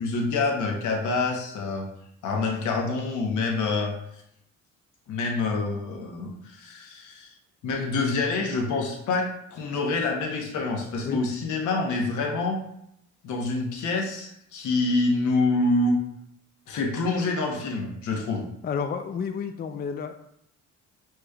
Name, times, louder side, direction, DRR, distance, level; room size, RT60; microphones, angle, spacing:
voice 1, 0.0-1.9 2.2-3.9 5.1-7.3 7.6-12.6 13.2-16.0 16.7-18.5, left 3 dB, 80° left, 1 dB, 1.0 m, -26 dB
voice 2, 18.6-20.1, left 6 dB, 30° left, 7 dB, 0.4 m, -30 dB
6.5 x 3.0 x 2.3 m, 0.76 s
cardioid pair, 90°, 30 cm